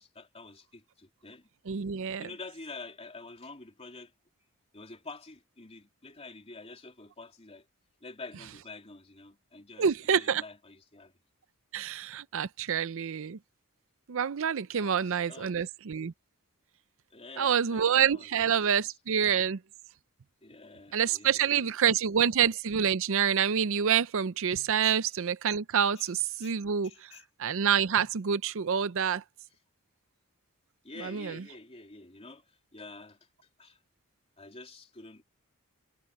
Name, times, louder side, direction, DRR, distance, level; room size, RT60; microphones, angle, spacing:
voice 1, 0.0-1.5 2.2-4.1 4.7-7.7 8.0-11.1 14.8-15.7 17.1-19.0 20.4-22.3 24.8-25.0 26.4-26.5 26.8-27.2 30.8-33.3 33.6-33.8 34.4-35.2, left 3 dB, 30° left, 3.1 m, -48 dB
voice 2, 1.7-2.3 9.8-10.4 11.7-13.4 14.1-16.1 17.4-19.6 20.9-26.9 27.4-29.2 31.1-31.3, right 8 dB, 65° right, 0.5 m, -27 dB
head